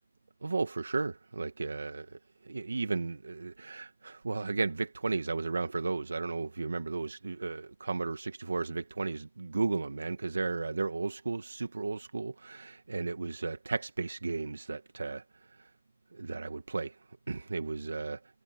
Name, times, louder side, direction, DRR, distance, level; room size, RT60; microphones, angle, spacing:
voice 1, 0.4-2.2 2.4-15.2 15.6-15.7 16.1-16.9 17.3-18.2, right 3 dB, 90° right, 1.8 m, -34 dB
hypercardioid pair, 150°, 0 cm